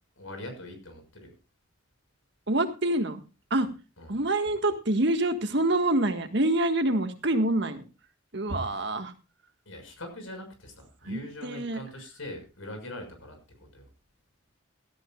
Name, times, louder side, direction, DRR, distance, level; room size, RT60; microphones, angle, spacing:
voice 1, 0.2-1.3 4.0-4.2 8.6-8.9 9.6-13.4 13.7-13.9, left 1 dB, 80° left, 5 dB, 6.3 m, -42 dB
voice 2, 2.5-3.2 3.5-3.7 4.1-7.8 8.3-9.1 11.1-11.8, right 1 dB, 55° right, 7 dB, 1.7 m, -26 dB
17.0 x 13.5 x 2.4 m, 0.30 s
head